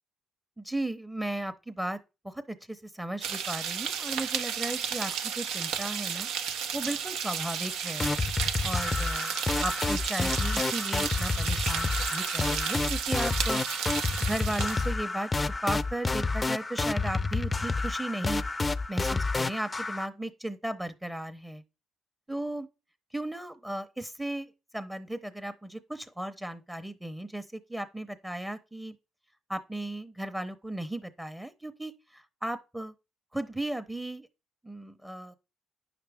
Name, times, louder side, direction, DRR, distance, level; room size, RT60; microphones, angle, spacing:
voice 1, 0.6-2.0 2.2-6.3 6.7-8.1 8.6-13.6 14.2-18.4 18.9-21.6 22.3-22.7 23.1-29.0 29.5-32.9 33.3-34.3 34.6-35.3, right 1 dB, 5° right, 0.8 m, -36 dB
sound 1, 3.2-14.9, right 7 dB, 85° right, 0.8 m, -33 dB
sound 2, 8.0-20.1, left 3 dB, 20° left, 0.5 m, -29 dB
9.3 x 5.8 x 3.5 m
cardioid pair, 90°, 0 cm